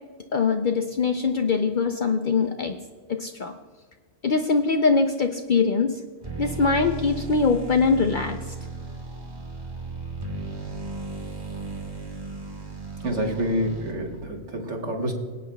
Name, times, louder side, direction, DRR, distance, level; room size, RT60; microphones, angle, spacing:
voice 1, 0.3-2.8 3.1-3.6 4.2-6.0 6.4-8.4, left 4 dB, 55° left, 5 dB, 0.6 m, -22 dB
sound 1, 6.2-14.2, right 3 dB, 20° right, 1.4 m, -35 dB
voice 2, 13.0-15.1, equal, 70° right, 1 dB, 1.8 m, -27 dB
25.5 x 8.6 x 2.2 m, 1.5 s
omnidirectional pair, 1.3 m